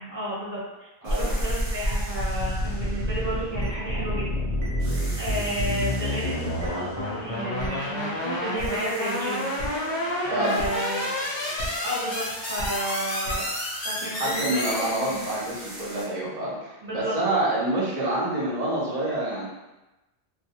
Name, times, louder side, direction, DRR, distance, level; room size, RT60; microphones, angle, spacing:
voice 1, 0.0-4.4 5.2-9.5 10.2-11.2 11.8-13.5 13.8-15.2 16.8-17.1, right 1 dB, 10° right, -10 dB, 0.9 m, -32 dB
sound 1, 1.0-4.3 4.8-8.2 8.5-16.0, right 1 dB, 70° right, 1.3 m, -44 dB
sound 2, 1.1-15.5, left 1 dB, 50° left, 0.5 m, -29 dB
sound 3, 3.6-3.7 4.6-4.7 5.6-5.7 6.6-6.7 7.6-7.7 8.6-8.7 9.6-9.7 10.6-10.7 11.6-11.7 12.6-12.7 13.2-13.3, right 2 dB, 90° right, 0.9 m, -33 dB
voice 2, 10.3-10.6 14.1-19.5, right 1 dB, 40° right, -7 dB, 0.8 m, -27 dB
2.3 x 2.1 x 2.8 m, 1.0 s
omnidirectional pair, 1.2 m